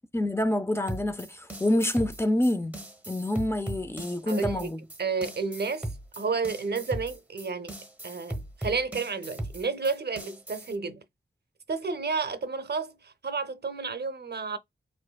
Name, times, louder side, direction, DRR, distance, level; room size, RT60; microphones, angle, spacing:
voice 1, 0.1-2.8 3.1-4.8, left 1 dB, 15° left, 0.5 m, -27 dB
sound 1, 0.9-10.8, right 1 dB, 10° right, 0.9 m, -38 dB
voice 2, 4.3-4.7 5.0-7.8 8.0-11.0 11.7-14.6, right 4 dB, 60° right, 0.6 m, -31 dB
4.4 x 2.6 x 2.2 m
wide cardioid pair, 70°, 19 cm